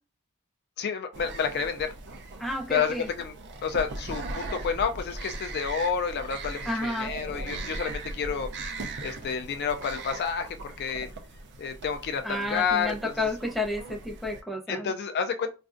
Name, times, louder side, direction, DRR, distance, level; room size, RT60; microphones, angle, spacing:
voice 1, 0.8-1.9 2.7-3.3 3.6-8.5 9.0-11.1 11.6-13.3 14.7-15.5, left 6 dB, 50° left, 0.4 m, -30 dB
sound 1, 1.1-14.4, right 2 dB, 50° right, 0.5 m, -39 dB
voice 2, 2.4-3.1 6.7-7.1 12.2-14.9, left 1 dB, ahead, 0.6 m, -31 dB
4.1 x 2.4 x 2.5 m
head